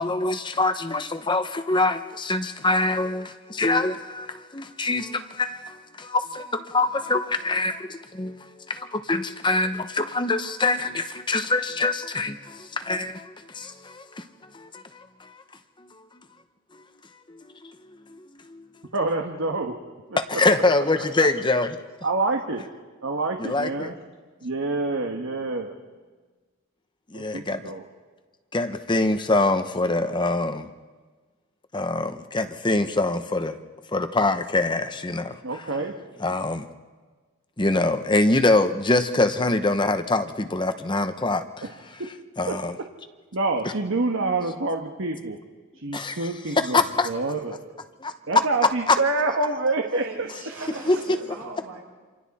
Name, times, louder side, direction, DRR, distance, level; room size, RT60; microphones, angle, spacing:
voice 1, 0.0-14.2 14.5-15.4 17.4-17.7 18.2-18.6 20.2-21.7 23.4-23.9 27.1-27.6 28.5-30.7 31.7-33.6 33.9-35.4 36.2-36.7 37.6-41.5 42.4-42.7 45.9-46.2 46.7-47.1 48.0-48.1 50.9-51.2, left 2 dB, 20° left, 8 dB, 0.9 m, -24 dB
voice 2, 18.9-19.8 20.1-20.4 21.0-21.3 22.0-22.7 23.0-24.0 24.4-25.7 27.1-27.8 35.4-36.2 41.6-42.1 42.5-42.9 43.3-45.4 45.7-47.8 48.3-50.3, right 3 dB, 60° right, 3 dB, 1.4 m, -27 dB
voice 3, 49.8-51.8, right 3 dB, 75° right, -1 dB, 5.9 m, -39 dB
28.5 x 27.0 x 4.2 m, 1.4 s
head